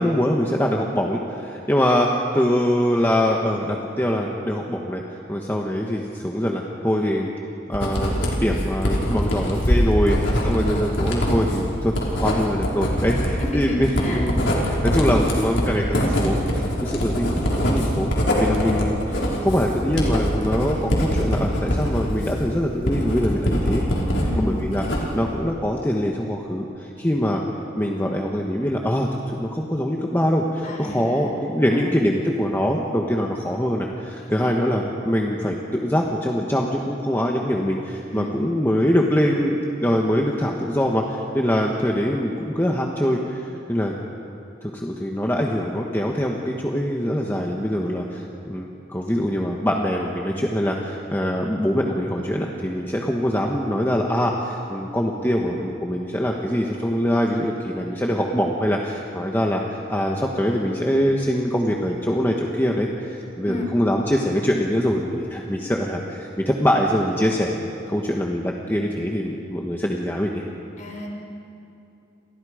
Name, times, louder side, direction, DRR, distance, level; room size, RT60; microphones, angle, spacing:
voice 1, 0.0-5.0 5.3-7.3 7.7-8.1 8.4-11.9 12.2-19.0 19.4-23.8 24.4-27.4 27.8-43.4 43.7-44.0 44.6-59.6 59.9-70.4, equal, 10° left, -1 dB, 1.4 m, -23 dB
Writing, 7.7-24.3 24.6-25.3, equal, 70° left, 5.1 m, -23 dB
voice 2, 12.1-12.5 13.4-14.3 18.4-18.6 24.2-24.5 30.6-32.0 34.2-34.6 38.1-38.3 63.4-63.7 70.8-71.1, left 2 dB, 40° left, 0 dB, 4.4 m, -34 dB
30.0 x 27.0 x 5.1 m, 2.7 s
head